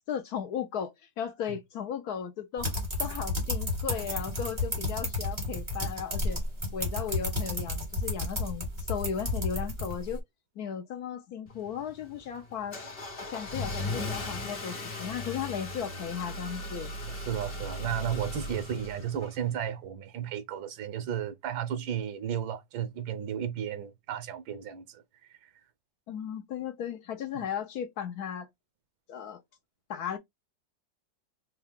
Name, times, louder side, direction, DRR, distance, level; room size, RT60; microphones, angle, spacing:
voice 1, 0.1-6.4 6.7-10.2 10.6-12.8 13.3-16.9 26.1-28.5 29.1-29.4 29.9-30.2, left 8 dB, 70° left, 1.0 m, -36 dB
sound 1, 2.6-10.2, left 2 dB, 15° right, 1.3 m, -32 dB
Car / Engine starting, 11.5-19.6, left 2 dB, 35° left, 1.2 m, -37 dB
voice 2, 17.0-25.0 27.3-27.4, right 9 dB, 85° right, 1.5 m, -34 dB
4.6 x 2.3 x 3.5 m
omnidirectional pair, 2.0 m